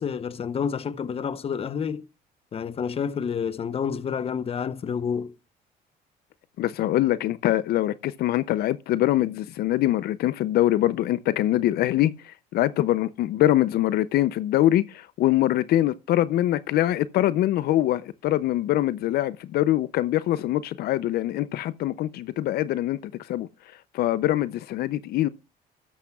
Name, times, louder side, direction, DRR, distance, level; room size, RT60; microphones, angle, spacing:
voice 1, 0.0-2.0 2.5-5.3, left 7 dB, 35° left, 0.8 m, -29 dB
voice 2, 6.6-23.5 23.9-25.3, left 14 dB, 70° left, 0.5 m, -23 dB
13.5 x 11.5 x 2.3 m
cardioid pair, 110°, 17 cm